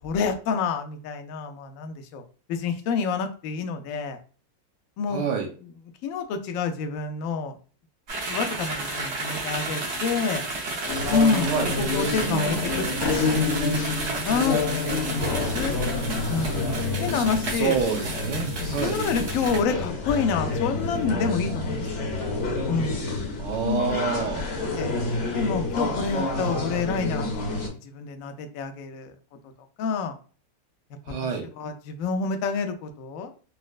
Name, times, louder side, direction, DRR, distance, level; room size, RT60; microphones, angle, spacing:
voice 1, 0.0-2.2 2.5-4.2 5.0-5.3 6.0-7.6 8.3-10.4 11.1-13.8 14.1-14.6 14.9-15.8 16.3-16.6 17.0-17.8 18.8-22.1 22.7-23.2 23.6-23.9 24.7-25.0 25.3-27.6 27.8-29.1 29.8-30.1 31.6-33.3, left 5 dB, 80° left, 6 dB, 0.7 m, -28 dB
voice 2, 5.1-5.5 11.4-11.7 17.1-19.0 23.4-24.4 31.1-31.5, right 6 dB, 75° right, 2 dB, 1.2 m, -28 dB
sound 1, 8.1-19.6, right 3 dB, 60° right, 0.7 m, -32 dB
sound 2, 10.9-27.7, left 3 dB, 55° left, 0.9 m, -28 dB
4.2 x 2.1 x 2.3 m, 0.39 s
omnidirectional pair, 2.0 m